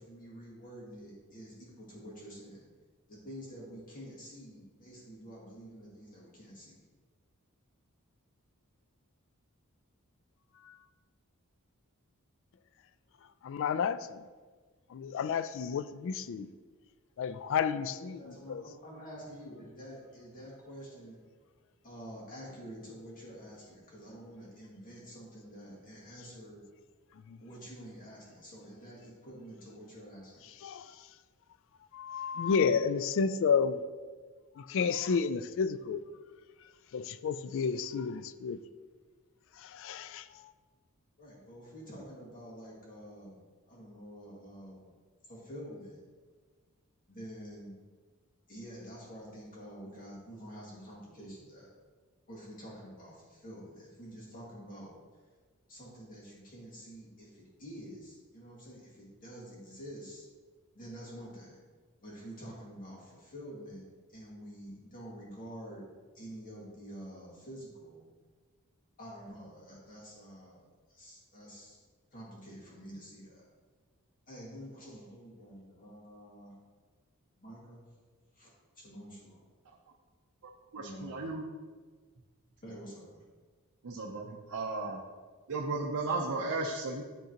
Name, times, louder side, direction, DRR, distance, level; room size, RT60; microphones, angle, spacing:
voice 1, 0.0-2.7 3.1-6.8 17.9-21.2 21.8-26.6 27.4-30.5 41.2-43.4 43.7-44.9 45.2-46.0 47.1-47.7 48.5-51.7 52.3-54.9 55.7-60.3 60.7-61.6 62.0-65.8 66.1-68.0 69.0-70.6 70.9-71.8 72.1-73.4 74.3-76.5 77.3-77.8 78.3-78.5 78.8-79.4 80.7-81.3 82.6-83.2, equal, 40° left, -5 dB, 1.9 m, -48 dB
voice 2, 13.4-14.2 14.9-16.5 17.2-18.6 27.3-27.4 30.6-30.9 31.9-33.8 34.6-36.0 36.9-38.6 39.6-40.5, left 6 dB, 60° left, 14 dB, 0.3 m, -31 dB
voice 3, 80.7-81.4 83.8-85.0 85.5-87.0, right 3 dB, 75° right, -3 dB, 0.6 m, -34 dB
10.5 x 3.7 x 2.9 m, 1.4 s
head